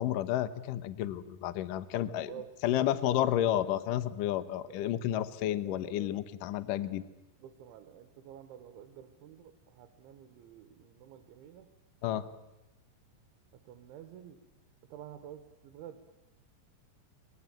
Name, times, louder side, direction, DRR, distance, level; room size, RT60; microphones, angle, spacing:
voice 1, 0.0-2.3 2.6-7.0 12.0-12.2, left 12 dB, 85° left, 15 dB, 1.9 m, -31 dB
voice 2, 2.2-3.8 4.7-5.0 5.5-6.2 7.4-11.7 12.0-12.2 13.5-14.4 14.9-16.1, right 10 dB, 85° right, 9 dB, 3.7 m, -49 dB
24.5 x 21.5 x 9.1 m, 0.96 s
omnidirectional pair, 5.3 m